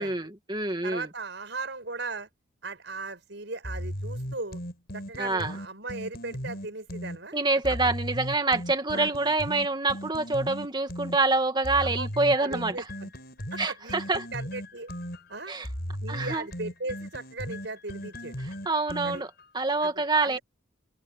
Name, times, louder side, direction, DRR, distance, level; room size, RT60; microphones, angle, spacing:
voice 1, 0.0-1.1 5.2-5.5 7.3-12.8 13.6-14.3 15.5-15.7 16.1-16.5 18.4-19.3 19.5-20.4, right 3 dB, 25° right, 2.3 m, -26 dB
voice 2, 0.8-2.3 2.6-4.6 4.9-7.4 7.7-7.8 8.9-9.1 11.8-12.1 12.4-13.1 13.5-14.9 15.3-15.5 16.0-18.3 19.0-19.2 19.8-20.4, right 3 dB, 65° right, 7.4 m, -38 dB
sound 1, 3.6-7.2 7.6-11.2 11.6-19.4, equal, 55° left, 7.9 m, -37 dB
open air
head